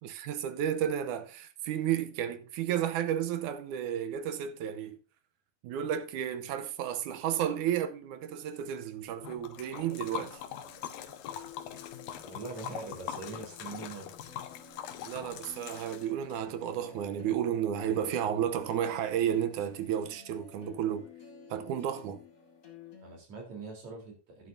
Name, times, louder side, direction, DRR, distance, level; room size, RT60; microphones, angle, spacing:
voice 1, 0.0-5.0 5.6-10.4 15.0-21.1 21.5-22.2, right 9 dB, 75° right, 2.1 m, -32 dB
Liquid, 9.2-16.4, left 10 dB, 85° left, 2.8 m, -42 dB
sound 1, 9.7-23.2, left 5 dB, 30° left, 2.0 m, -53 dB
voice 2, 12.2-14.1 18.7-18.8 23.0-24.5, right 3 dB, 50° right, 5.1 m, -43 dB
12.0 x 11.0 x 2.7 m
omnidirectional pair, 4.1 m